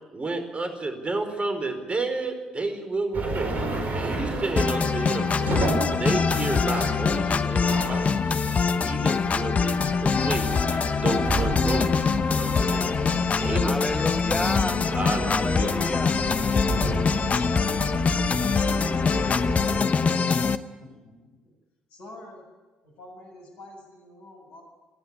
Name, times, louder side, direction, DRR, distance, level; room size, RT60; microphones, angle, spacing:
voice 1, 0.1-5.3 5.7-8.4 8.8-13.0 13.4-14.0 14.9-15.8, right 3 dB, 30° right, 6 dB, 4.7 m, -31 dB
sound 1, 3.1-19.8, right 2 dB, 50° right, 4.6 m, -32 dB
sound 2, 4.6-20.6, left 5 dB, 40° left, 1.0 m, -24 dB
voice 2, 13.5-14.8 15.2-16.2, left 1 dB, 10° left, 10 dB, 1.2 m, -30 dB
voice 3, 20.8-21.1 21.9-22.4 22.8-24.6, left 1 dB, 70° left, 0 dB, 7.7 m, -46 dB
29.5 x 11.0 x 9.9 m, 1.2 s
figure-of-eight pair, 45°, 4 cm